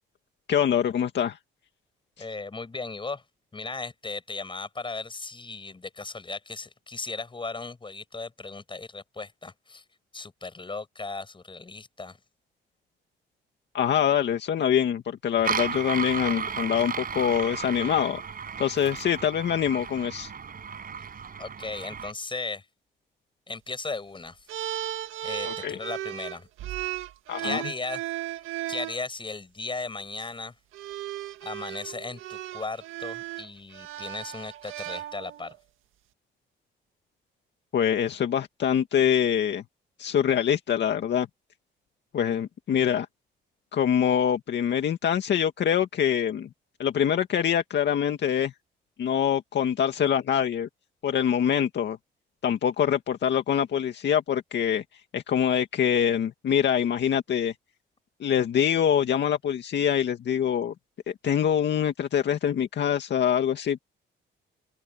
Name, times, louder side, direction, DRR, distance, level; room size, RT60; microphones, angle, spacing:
voice 1, 0.5-1.4 13.7-18.2 18.6-20.3 25.4-25.7 27.3-27.6 37.7-39.6 40.0-41.3 42.1-43.1 43.7-46.5 46.8-48.5 49.0-50.7 51.0-52.0 52.4-54.8 55.1-57.5 58.2-60.7 61.1-63.8, left 9 dB, 65° left, 2.1 m, -24 dB
voice 2, 2.2-3.2 3.5-9.8 10.1-12.2 21.4-22.7 23.5-24.5 25.2-26.5 27.4-28.0 28.7-30.6 31.4-35.6, left 3 dB, 25° left, 7.1 m, -36 dB
sound 1, 15.4-22.1, right 6 dB, 45° right, 7.0 m, -34 dB
sound 2, 24.5-29.0 30.0-30.2 30.7-35.6, right 14 dB, 85° right, 1.8 m, -35 dB
open air
cardioid pair, 90°, 20 cm